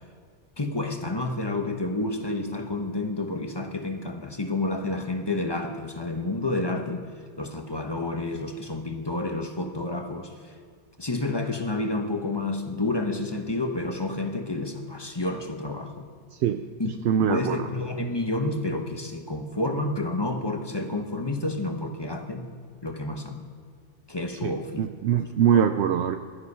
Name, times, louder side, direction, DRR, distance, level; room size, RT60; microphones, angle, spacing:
voice 1, 0.6-7.0 7.4-10.3 11.0-16.1 16.8-17.0 17.3-22.5 22.8-23.4 24.1-24.9 25.5-25.6, left 2 dB, 25° left, 4 dB, 1.1 m, -29 dB
voice 2, 17.0-17.7 24.4-26.2, right 9 dB, 75° right, 8 dB, 0.9 m, -23 dB
16.5 x 12.5 x 5.5 m, 2.1 s
omnidirectional pair, 1.1 m